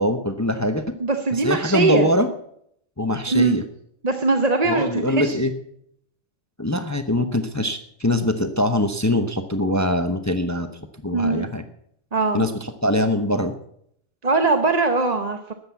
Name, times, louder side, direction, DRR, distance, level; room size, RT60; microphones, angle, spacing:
voice 1, 0.0-0.8 1.4-2.3 3.0-3.6 4.7-5.5 6.6-10.7 11.0-11.6 12.3-13.5, left 1 dB, 15° left, 8 dB, 0.8 m, -22 dB
voice 2, 1.0-2.1 3.3-3.6 4.0-5.4 11.1-11.5 12.1-12.4 14.2-15.5, right 3 dB, 35° right, 6 dB, 0.9 m, -21 dB
13.0 x 8.1 x 8.1 m, 0.70 s
omnidirectional pair, 1.2 m